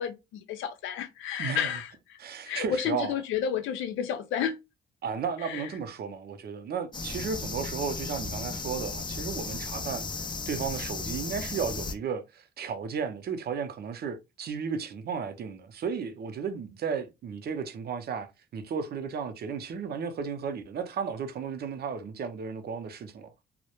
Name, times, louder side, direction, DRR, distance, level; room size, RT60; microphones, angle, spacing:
voice 1, 0.0-2.2 2.5-4.6 5.4-5.7, left 8 dB, 80° left, 0.5 m, -31 dB
voice 2, 1.4-1.7 2.2-3.1 5.0-10.0 10.5-23.3, right 6 dB, 55° right, 0.5 m, -34 dB
sound 1, 6.9-11.9, left 4 dB, 25° left, 0.4 m, -35 dB
2.2 x 2.0 x 2.9 m
cardioid pair, 90°, 20 cm